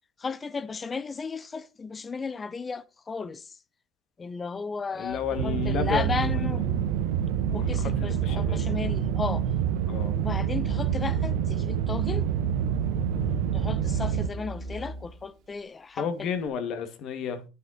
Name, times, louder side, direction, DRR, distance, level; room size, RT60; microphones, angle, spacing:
voice 1, 0.2-3.5 4.2-6.7 7.5-9.5 10.2-12.3 13.5-16.3, left 4 dB, 20° left, 0.8 m, -34 dB
voice 2, 4.9-7.1 7.5-8.7 9.9-10.2 13.2-13.4 16.0-17.5, left 7 dB, 50° left, 2.3 m, -33 dB
Organ, 5.0-15.3, right 1 dB, 50° right, 3.0 m, -37 dB
sound 1, 5.4-14.3, right 10 dB, 85° right, 1.3 m, -27 dB
10.5 x 9.4 x 4.3 m
supercardioid pair, 120°, 0 cm